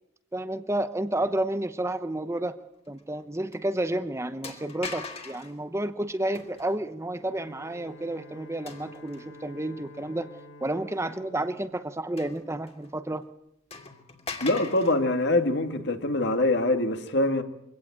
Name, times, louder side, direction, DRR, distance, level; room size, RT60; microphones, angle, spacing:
voice 1, 0.3-2.6 2.9-10.3 10.6-13.2, right 1 dB, 15° right, 10 dB, 0.9 m, -31 dB
sound 1, 3.0-3.2 3.5-3.6 4.4-5.6 6.3-6.8 8.7-9.4 10.0-10.1 12.2-12.9 13.2-13.3 13.7-15.0, left 4 dB, 30° left, 2.8 m, -41 dB
Bowed string instrument, 7.2-12.8, left 1 dB, 75° left, 3.4 m, -50 dB
voice 2, 14.4-17.4, left 2 dB, 55° left, 6 dB, 2.2 m, -24 dB
24.0 x 17.0 x 8.7 m, 0.83 s
head